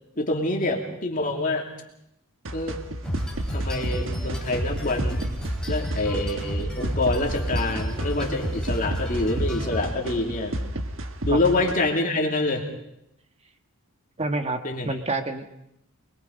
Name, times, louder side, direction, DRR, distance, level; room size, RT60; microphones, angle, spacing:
voice 1, 0.2-1.7 2.5-2.8 3.5-5.2 5.7-10.6 11.3-12.6 14.6-14.9, left 2 dB, 35° left, 1 dB, 2.8 m, -26 dB
sound 1, 2.4-11.7, right 1 dB, 60° right, 1.5 m, -32 dB
sound 2, 3.0-10.2, equal, 5° left, 4.1 m, -31 dB
voice 2, 14.2-15.5, right 2 dB, 30° right, 7 dB, 1.5 m, -28 dB
26.0 x 22.0 x 5.3 m, 0.82 s
head